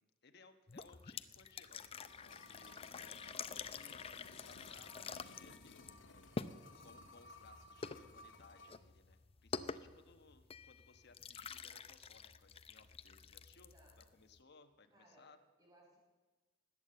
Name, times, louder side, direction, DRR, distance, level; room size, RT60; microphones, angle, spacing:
voice 1, 0.0-13.7 14.0-15.4, left 4 dB, 60° left, 7 dB, 1.2 m, -64 dB
sound 1, 0.7-14.4, left 5 dB, 30° left, 0.5 m, -49 dB
sound 2, 1.6-8.8 9.1-9.2, left 3 dB, 75° left, 1.5 m, -58 dB
voice 2, 3.2-3.6 13.5-14.0 14.9-15.3 15.6-16.0, right 1 dB, 20° right, -3 dB, 6.2 m, -66 dB
20.0 x 8.6 x 7.8 m, 1.2 s
head